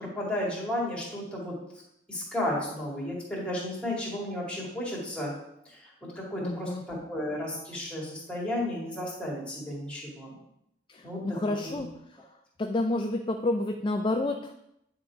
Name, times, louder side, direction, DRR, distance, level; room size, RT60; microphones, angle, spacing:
voice 1, 0.0-1.5 2.1-5.3 5.7-10.3 11.0-11.4 11.6-11.8, left 1 dB, 5° left, -5 dB, 2.1 m, -33 dB
voice 2, 6.4-6.9 10.9-12.2 12.6-14.5, left 2 dB, 25° left, 5 dB, 0.3 m, -30 dB
9.0 x 3.8 x 4.6 m, 0.79 s
head